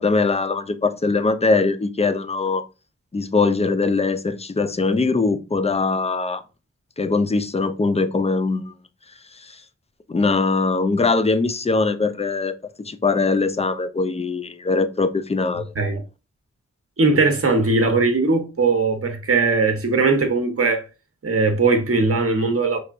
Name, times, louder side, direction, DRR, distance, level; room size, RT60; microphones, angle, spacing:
voice 1, 0.0-2.6 3.1-6.4 7.0-8.7 9.4-9.6 10.1-12.6 12.8-15.7, left 3 dB, 20° left, 0.4 m, -21 dB
voice 2, 17.0-20.8 21.2-22.8, right 3 dB, 50° right, 1.0 m, -19 dB
5.1 x 3.4 x 2.5 m
wide cardioid pair, 80°, 29 cm